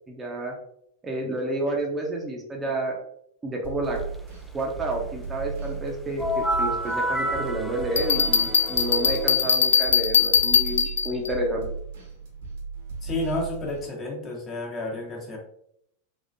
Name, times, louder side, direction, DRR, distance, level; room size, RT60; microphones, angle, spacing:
voice 1, 0.1-0.5 1.0-2.9 3.4-4.0 4.5-11.6, right 2 dB, 20° right, 0 dB, 0.8 m, -30 dB
sound 1, 3.6-13.9, right 4 dB, 70° right, 1.2 m, -36 dB
sound 2, 6.2-9.8, equal, 5° left, 0.4 m, -30 dB
Bell, 8.0-11.3, left 7 dB, 75° left, 0.3 m, -21 dB
voice 2, 13.0-15.4, left 2 dB, 30° left, 0 dB, 1.2 m, -31 dB
3.6 x 3.1 x 2.6 m, 0.71 s
hypercardioid pair, 95°, 0 cm